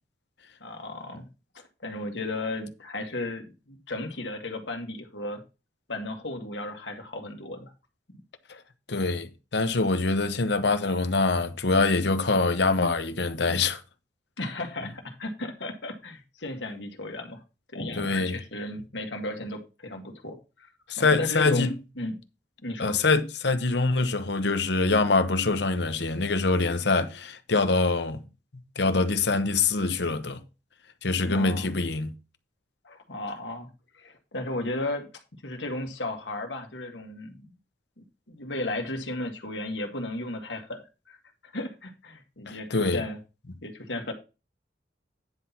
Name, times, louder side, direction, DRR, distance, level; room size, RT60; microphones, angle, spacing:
voice 1, 0.6-1.3 1.8-5.4 5.9-7.7 14.4-17.4 17.7-20.7 21.0-22.2 22.6-23.0 31.2-31.7 32.8-35.1 35.4-37.5 38.3-40.8 41.1-41.2 41.5-43.2 43.6-44.1, left 2 dB, 85° left, 1.8 m, -34 dB
voice 2, 8.9-13.8 18.0-18.4 20.9-21.7 22.8-28.2 28.8-30.4 31.0-32.1 42.5-43.0, left 3 dB, 70° left, 1.0 m, -24 dB
9.9 x 4.2 x 5.8 m
head